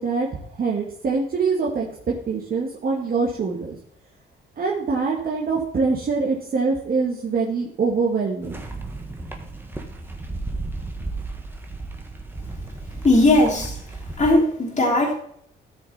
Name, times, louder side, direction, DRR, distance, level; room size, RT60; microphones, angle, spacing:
voice 1, 0.0-3.8 4.6-8.6, right 4 dB, 50° right, -3 dB, 2.1 m, -24 dB
sound 1, 8.4-14.3, right 2 dB, 10° right, 1.7 m, -34 dB
voice 2, 13.0-13.8 14.2-15.1, left 2 dB, 35° left, -6 dB, 3.1 m, -18 dB
13.0 x 6.7 x 4.3 m, 0.64 s
cardioid pair, 90°, 20 cm